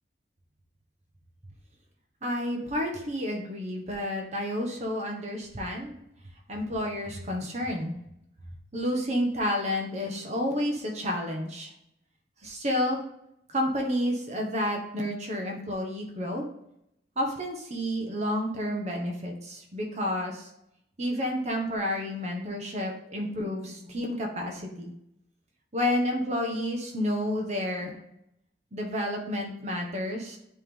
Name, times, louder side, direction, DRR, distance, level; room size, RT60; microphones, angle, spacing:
voice 1, 2.2-5.9 6.5-8.0 8.7-11.7 12.4-13.0 13.5-16.4 17.2-20.5 21.0-24.9 25.7-28.0 28.7-30.4, left 1 dB, 40° right, 1 dB, 1.2 m, -30 dB
9.9 x 3.5 x 3.7 m, 0.78 s
head